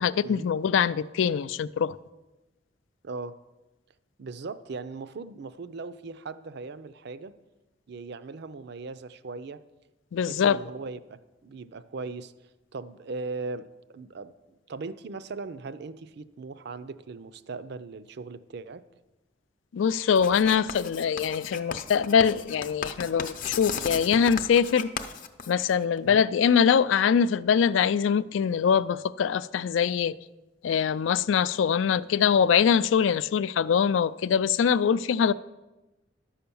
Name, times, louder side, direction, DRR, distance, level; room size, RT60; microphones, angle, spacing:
voice 1, 0.0-2.0 10.1-10.6 19.7-24.9 25.5-30.2 30.6-35.3, left 7 dB, 90° left, 0.4 m, -23 dB
voice 2, 3.0-3.4 4.2-7.3 7.9-9.6 10.2-12.3 12.7-18.9 26.0-26.2, right 3 dB, 60° right, 0.5 m, -39 dB
Writing, 20.2-26.0, left 6 dB, 45° left, 0.6 m, -36 dB
11.5 x 5.8 x 6.9 m
head